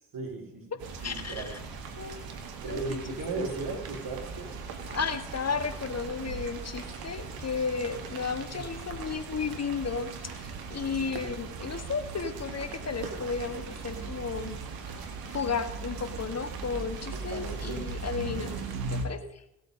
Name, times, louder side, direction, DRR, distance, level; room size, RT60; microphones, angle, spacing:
voice 1, 0.1-0.7 1.0-1.5 2.6-4.6 8.5-8.7 17.1-17.8, right 3 dB, 65° right, 3 dB, 4.2 m, -36 dB
sound 1, 0.8-19.1, right 4 dB, 80° right, 1.9 m, -39 dB
voice 2, 1.0-1.6 2.0-2.2 2.6-3.0 3.4-3.5 4.9-14.6 15.3-18.6 18.9-19.4, left 5 dB, 45° left, 10 dB, 1.9 m, -33 dB
17.0 x 8.3 x 5.2 m, 0.84 s
hypercardioid pair, 45°, 36 cm